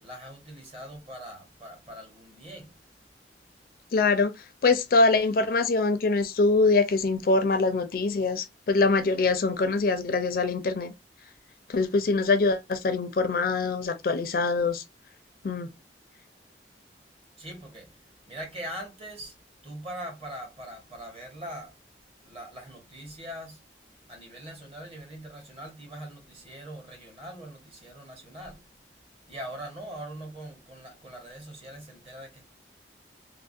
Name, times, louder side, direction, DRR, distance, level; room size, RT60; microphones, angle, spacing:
voice 1, 0.0-2.7 17.4-18.0 18.3-19.3 19.6-21.7 22.2-23.6 24.1-28.6 29.3-32.4, right 1 dB, 35° right, 1.1 m, -42 dB
voice 2, 3.9-4.3 4.6-10.9 11.7-14.8 15.4-15.7, left 3 dB, 55° left, 0.4 m, -24 dB
3.3 x 2.0 x 2.5 m
head